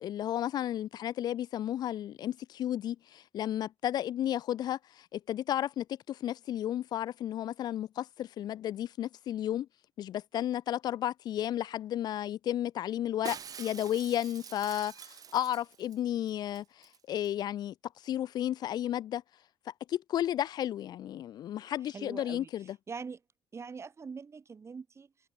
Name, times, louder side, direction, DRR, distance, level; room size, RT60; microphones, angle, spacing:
voice 1, 0.0-9.7 10.0-17.7 18.0-19.2 19.7-22.8, left 11 dB, 60° left, 0.6 m, -33 dB
Shatter, 13.2-16.0 16.3-16.4 16.5-17.0 17.2-17.3, right 8 dB, 50° right, 4.9 m, -46 dB
voice 2, 21.8-22.5 22.9-23.2 23.5-25.1, right 5 dB, 35° right, 3.2 m, -43 dB
supercardioid pair, 70°, 8 cm